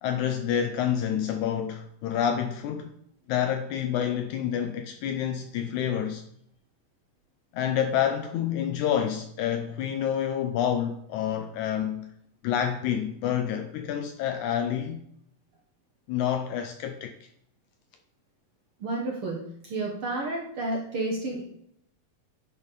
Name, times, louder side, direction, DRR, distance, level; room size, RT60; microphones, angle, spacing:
voice 1, 0.0-2.9 3.3-6.2 7.5-12.1 12.4-15.0 16.1-17.2, left 9 dB, 80° left, 1.8 m, -28 dB
voice 2, 18.8-21.4, right 2 dB, 60° right, 1.5 m, -31 dB
9.9 x 5.5 x 4.0 m
omnidirectional pair, 3.9 m